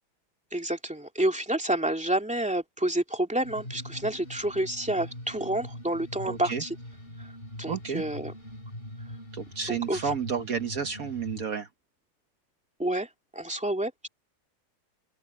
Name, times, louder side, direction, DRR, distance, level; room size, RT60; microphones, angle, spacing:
voice 1, 0.5-6.7 7.6-8.3 9.7-10.0 12.8-13.1 13.3-14.1, right 1 dB, 5° right, 2.3 m, -29 dB
sound 1, 3.4-11.5, left 1 dB, 25° left, 6.3 m, -42 dB
voice 2, 6.2-6.6 7.7-8.0 9.3-11.7, right 6 dB, 55° right, 1.1 m, -31 dB
open air
omnidirectional pair, 2.4 m